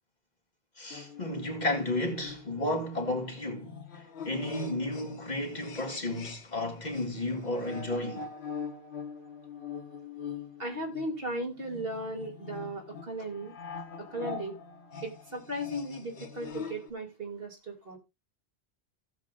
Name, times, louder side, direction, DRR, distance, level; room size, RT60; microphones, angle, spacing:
voice 1, 0.8-8.3, left 1 dB, 40° left, 2.1 m, -33 dB
sound 1, 0.9-6.7 6.9-16.9, left 6 dB, 75° left, 1.4 m, -44 dB
voice 2, 10.6-13.5 14.0-14.5 15.0-18.0, right 1 dB, 60° right, 3.0 m, -36 dB
16.5 x 7.4 x 2.5 m
omnidirectional pair, 1.1 m